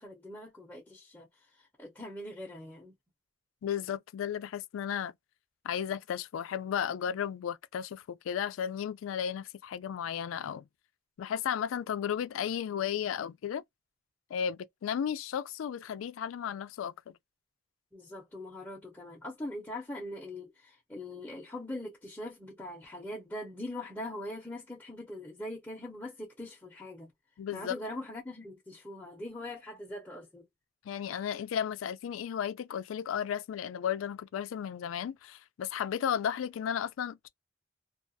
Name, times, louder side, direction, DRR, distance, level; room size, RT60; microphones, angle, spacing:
voice 1, 0.0-2.9 17.9-27.1 27.5-30.4, left 1 dB, 10° left, 0.6 m, -42 dB
voice 2, 3.6-5.1 5.6-10.7 11.2-13.6 14.3-17.1 27.4-27.7 30.8-37.3, left 8 dB, 90° left, 0.3 m, -34 dB
2.3 x 2.2 x 2.5 m
head